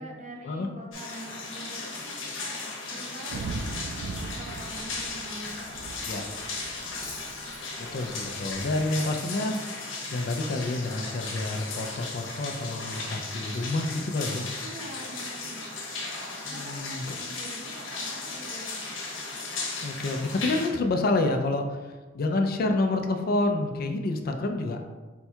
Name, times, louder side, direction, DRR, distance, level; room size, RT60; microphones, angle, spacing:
voice 1, 0.0-3.6 4.0-7.0 14.6-15.8 16.4-18.9, right 1 dB, 40° right, -1 dB, 0.8 m, -45 dB
sound 1, 0.9-20.7, left 3 dB, 75° left, 0.9 m, -36 dB
Cutlery silverware, 2.6-5.8 6.0-6.2 6.6-7.6, left 2 dB, 15° left, 0.7 m, -49 dB
Thunder / Rain, 3.3-9.0, right 3 dB, 90° right, 0.3 m, -40 dB
voice 2, 7.8-9.6 10.1-14.4 16.5-17.0 19.8-24.8, left 2 dB, 50° left, 5 dB, 0.4 m, -28 dB
4.4 x 2.3 x 4.3 m, 1.3 s
head